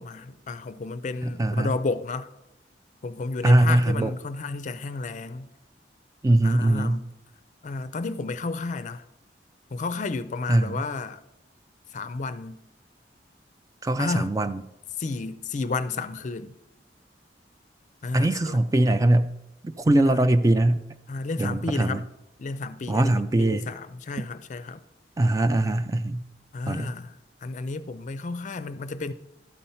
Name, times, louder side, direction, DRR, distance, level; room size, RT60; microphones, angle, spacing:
voice 1, 0.0-2.3 3.0-5.5 6.4-7.1 7.6-9.0 9.7-11.2 11.9-12.6 14.0-14.3 15.0-16.5 18.0-18.6 20.1-20.3 21.1-22.0 22.4-23.1 23.4-24.8 26.5-29.1, left 3 dB, 45° left, 0.4 m, -32 dB
voice 2, 1.2-1.7 3.4-4.1 6.2-7.0 10.5-10.8 13.8-14.6 18.1-19.3 19.8-20.8 21.4-22.0 22.9-23.7 25.2-26.2 26.7-26.9, right 1 dB, 20° right, 0.3 m, -21 dB
12.0 x 4.3 x 5.5 m
head